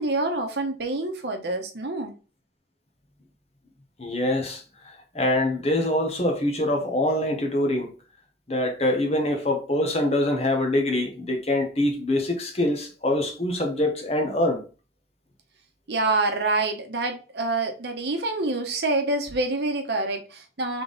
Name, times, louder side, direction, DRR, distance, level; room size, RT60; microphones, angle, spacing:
voice 1, 0.0-2.1 15.9-20.8, right 2 dB, 60° right, 0.9 m, -26 dB
voice 2, 4.0-7.9 8.5-14.6, left 1 dB, 35° left, 1.0 m, -24 dB
3.7 x 3.4 x 3.9 m
head